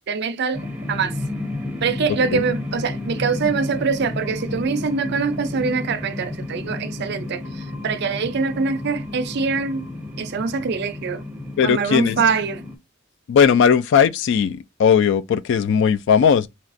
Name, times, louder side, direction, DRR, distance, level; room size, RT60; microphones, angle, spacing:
voice 1, 0.1-1.1 1.8-9.9 10.2-11.2 11.6-12.6, right 5 dB, 55° right, 0.4 m, -24 dB
sound 1, 0.5-12.7, left 2 dB, 10° right, 0.7 m, -32 dB
voice 2, 11.6-12.2 13.3-16.5, left 7 dB, 65° left, 0.3 m, -17 dB
4.2 x 2.3 x 2.5 m
head